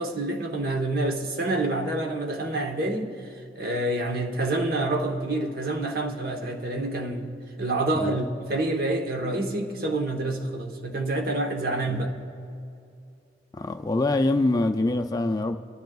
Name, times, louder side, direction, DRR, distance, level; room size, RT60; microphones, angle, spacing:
voice 1, 0.0-3.1 3.5-7.3 7.6-12.1, right 2 dB, 55° right, 1.0 m, -27 dB
voice 2, 11.9-12.3 13.5-15.6, left 2 dB, 20° left, 0.4 m, -25 dB
27.5 x 10.5 x 2.3 m
head